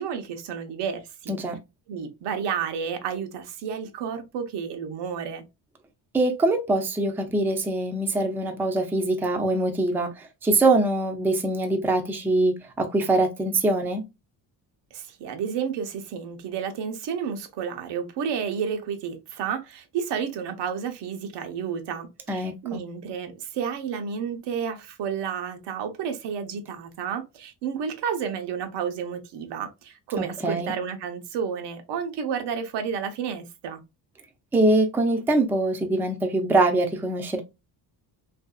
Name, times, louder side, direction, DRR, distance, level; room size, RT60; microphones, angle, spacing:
voice 1, 0.0-1.4 1.9-5.4 14.9-33.8, right 7 dB, 85° right, 0.7 m, -31 dB
voice 2, 1.3-1.6 6.1-14.0 22.3-22.8 30.2-30.7 34.5-37.4, right 2 dB, 5° right, 0.3 m, -23 dB
2.8 x 2.6 x 2.2 m
cardioid pair, 140°, 41 cm